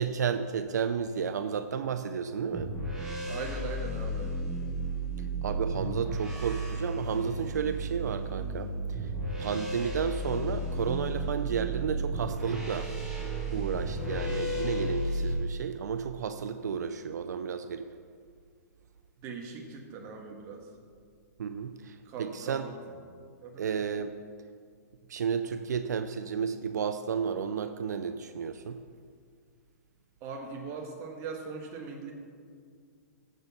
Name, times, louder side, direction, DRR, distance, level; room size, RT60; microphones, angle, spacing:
voice 1, 0.0-2.7 5.4-9.1 9.4-12.9 13.5-17.9 21.4-22.7 23.6-24.1 25.1-28.8, right 7 dB, 80° right, 9 dB, 0.5 m, -32 dB
sound 1, 2.5-15.3, right 1 dB, 10° right, 2.1 m, -33 dB
voice 2, 3.3-4.4 19.2-20.7 22.0-22.7 23.4-23.6 30.2-32.1, right 4 dB, 30° right, 2 dB, 1.4 m, -40 dB
14.5 x 6.2 x 4.1 m, 2.1 s
hypercardioid pair, 145°, 9 cm